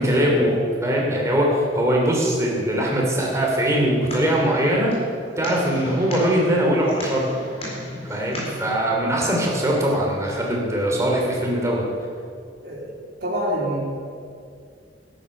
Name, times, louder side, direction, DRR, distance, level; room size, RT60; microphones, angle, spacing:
voice 1, 0.0-5.0 5.4-7.3 8.1-11.9, equal, 15° right, -2 dB, 2.9 m, -21 dB
sound 1, 3.6-8.7, left 1 dB, 35° left, 4.2 m, -36 dB
voice 2, 13.2-13.9, right 1 dB, 60° right, -4 dB, 3.8 m, -26 dB
12.5 x 10.5 x 6.7 m, 2.3 s
head